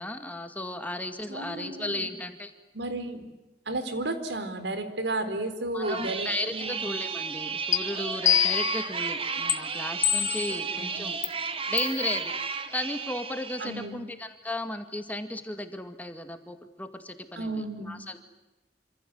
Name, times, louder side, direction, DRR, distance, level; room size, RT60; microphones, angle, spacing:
voice 1, 0.0-2.5 5.7-11.2 11.7-12.4 12.7-18.2, left 1 dB, 10° left, 7 dB, 2.2 m, -35 dB
voice 2, 1.3-2.1 2.7-3.4 3.7-6.7 10.8-11.0 13.6-14.0 17.4-18.0, right 2 dB, 85° right, 9 dB, 4.3 m, -33 dB
sound 1, 5.8-13.9, right 5 dB, 30° right, 2.0 m, -33 dB
sound 2, 7.7-7.8 8.3-8.9 9.5-9.6 10.0-10.6 11.2-11.3 11.8-12.0, left 10 dB, 45° left, 1.4 m, -24 dB
27.5 x 26.5 x 8.0 m, 1.0 s
head